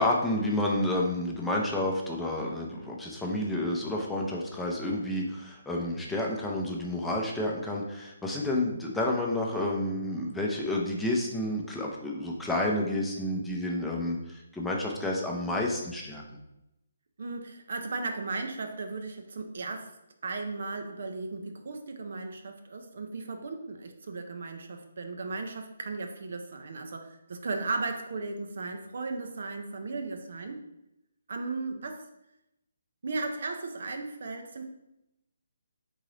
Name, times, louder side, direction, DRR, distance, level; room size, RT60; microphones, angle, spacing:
voice 1, 0.0-16.2, left 1 dB, 5° left, -2 dB, 0.6 m, -30 dB
voice 2, 17.2-19.9 20.2-30.6 31.3-32.0 33.0-34.7, right 3 dB, 55° right, 5 dB, 0.5 m, -36 dB
3.8 x 3.6 x 3.2 m, 0.86 s
figure-of-eight pair, 140°, 0 cm